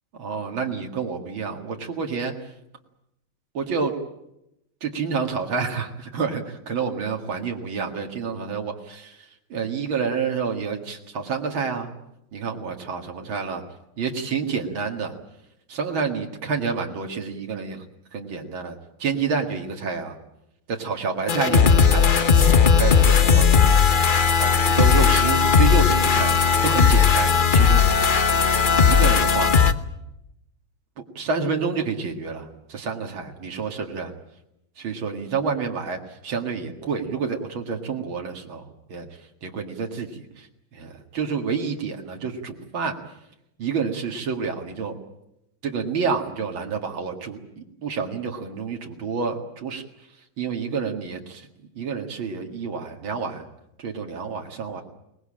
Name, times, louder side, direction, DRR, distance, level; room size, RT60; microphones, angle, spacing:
voice 1, 0.1-2.3 3.5-3.9 4.8-9.2 9.5-11.9 12.3-13.6 14.0-15.1 15.7-17.8 18.1-20.2 20.7-22.2 22.8-23.5 24.4-27.8 28.8-29.5 31.2-34.1 34.8-36.0 36.2-38.6 38.9-39.1 39.4-40.5 40.7-43.0 43.6-45.0 45.6-49.8 50.4-51.5 51.7-53.5 53.8-54.8, right 5 dB, 85° right, 3 dB, 2.8 m, -28 dB
sound 1, 21.3-29.7, left 6 dB, 40° left, 0.8 m, -17 dB
23.5 x 20.0 x 8.7 m, 0.84 s
omnidirectional pair, 2.1 m